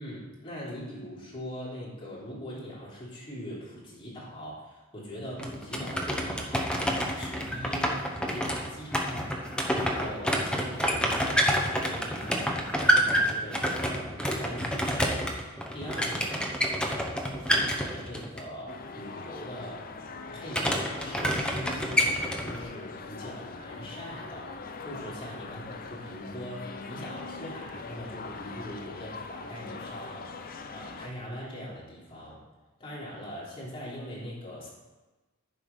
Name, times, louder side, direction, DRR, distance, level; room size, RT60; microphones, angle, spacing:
voice 1, 0.0-19.9 20.3-32.4 32.8-34.7, equal, 30° left, -7 dB, 3.1 m, -41 dB
sound 1, 5.4-18.4 20.5-22.6, equal, 5° left, 0.9 m, -28 dB
sound 2, 18.7-31.1, left 4 dB, 45° left, 0.5 m, -42 dB
10.5 x 4.8 x 5.3 m, 1.2 s
head